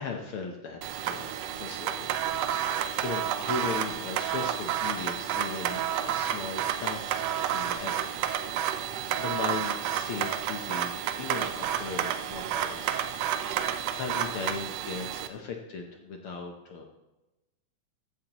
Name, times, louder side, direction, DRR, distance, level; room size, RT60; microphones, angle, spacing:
voice 1, 0.0-2.2 2.5-8.2 8.8-13.0 13.4-16.9, left 5 dB, 70° left, 3 dB, 1.3 m, -38 dB
sound 1, 0.8-15.3, right 10 dB, 75° right, 1.5 m, -30 dB
15.0 x 11.5 x 3.0 m, 1.0 s
omnidirectional pair, 3.6 m